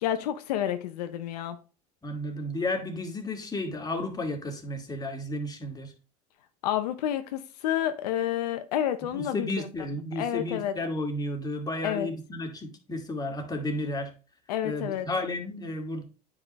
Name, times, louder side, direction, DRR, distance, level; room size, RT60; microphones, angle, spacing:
voice 1, 0.0-1.6 6.6-9.5 10.2-10.8 11.8-12.1 14.5-15.1, left 11 dB, 85° left, 0.7 m, -29 dB
voice 2, 2.0-5.9 9.1-14.1 14.6-16.0, left 1 dB, 20° left, 2.1 m, -32 dB
9.7 x 4.9 x 3.1 m
hypercardioid pair, 90°, 20 cm